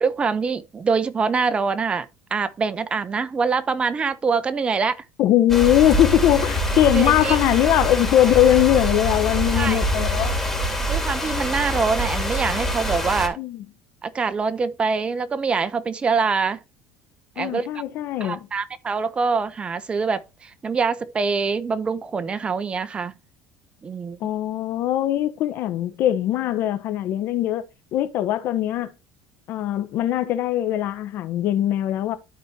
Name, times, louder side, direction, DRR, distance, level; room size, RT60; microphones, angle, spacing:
voice 1, 0.0-5.0 6.9-7.4 9.5-9.8 10.9-13.4 14.0-16.6 17.4-17.7 18.2-23.1 23.8-24.2, right 5 dB, 25° right, 1.0 m, -24 dB
voice 2, 5.2-10.3 13.4-13.6 17.4-18.5 24.2-27.6 27.9-28.9 29.5-32.2, left 12 dB, 60° left, 1.2 m, -21 dB
sound 1, 5.5-13.3, equal, 5° left, 3.1 m, -25 dB
13.0 x 4.4 x 3.0 m
supercardioid pair, 110°, 4 cm